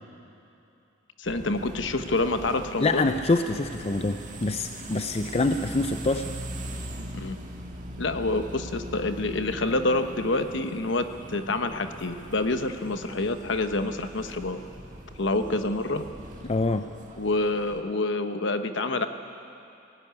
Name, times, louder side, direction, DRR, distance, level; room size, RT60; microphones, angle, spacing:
voice 1, 1.2-3.1 7.1-7.4 8.0-14.6 15.2-16.0 17.2-19.1, left 2 dB, 65° left, 8 dB, 1.1 m, -27 dB
sound 1, 1.2-17.8, right 1 dB, 40° right, 1.8 m, -41 dB
voice 2, 2.8-6.3 16.4-16.9, left 2 dB, 30° left, 8 dB, 0.5 m, -25 dB
17.0 x 17.0 x 9.6 m, 2.7 s
head